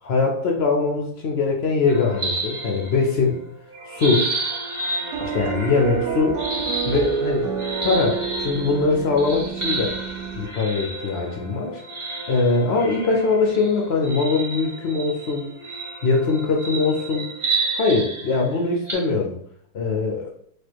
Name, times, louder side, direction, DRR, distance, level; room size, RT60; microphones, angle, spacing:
voice 1, 0.0-3.4 3.9-4.3 5.2-6.4 6.9-7.5 7.8-10.0 10.4-11.8 12.3-15.5 16.0-17.3 17.7-19.3 19.7-20.3, left 4 dB, 65° left, 1 dB, 0.6 m, -22 dB
sound 1, 1.9-3.3 3.7-18.9, right 3 dB, 25° right, 0.7 m, -31 dB
sound 2, 5.1-10.5, right 6 dB, 70° right, 1.1 m, -28 dB
4.5 x 2.4 x 4.5 m, 0.66 s
omnidirectional pair, 1.8 m